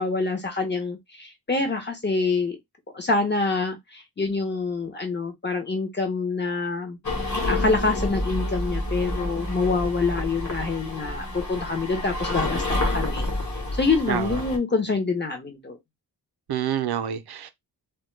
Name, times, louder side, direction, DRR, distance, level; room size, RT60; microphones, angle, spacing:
voice 1, 0.0-2.6 2.9-7.0 7.5-13.3 13.7-15.8, left 3 dB, 25° left, 0.6 m, -26 dB
sound 1, 7.0-14.6, left 1 dB, 45° left, 1.0 m, -29 dB
voice 2, 14.1-14.4 16.5-17.5, right 9 dB, 70° right, 0.5 m, -27 dB
2.1 x 2.1 x 3.0 m
wide cardioid pair, 165°, 40 cm